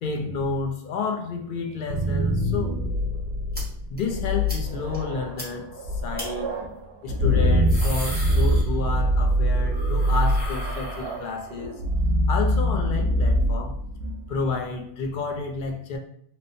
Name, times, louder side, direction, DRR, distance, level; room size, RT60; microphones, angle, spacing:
voice 1, 0.0-2.7 3.9-6.5 7.0-11.8 12.3-13.8 14.3-16.0, left 4 dB, 60° left, 2 dB, 0.6 m, -30 dB
sound 1, 1.6-14.5, equal, 90° right, 0.8 m, -24 dB
sound 2, 3.5-3.6 4.0-4.1 4.5-4.6 4.9-5.0 5.4-5.5 6.2-6.3 7.4-9.1 9.4-11.5, equal, 10° right, 0.8 m, -37 dB
2.9 x 2.0 x 2.6 m, 0.66 s
omnidirectional pair, 1.0 m